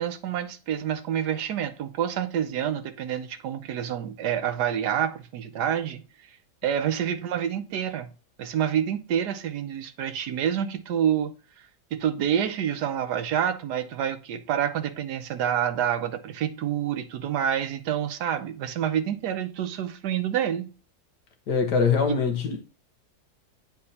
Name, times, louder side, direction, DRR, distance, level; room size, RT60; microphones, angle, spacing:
voice 1, 0.0-6.0 6.6-8.1 8.4-11.3 11.9-20.7 22.1-22.2, right 9 dB, 70° right, 1.2 m, -28 dB
voice 2, 21.5-22.6, left 5 dB, 65° left, 1.7 m, -23 dB
9.6 x 4.2 x 2.8 m
omnidirectional pair, 1.9 m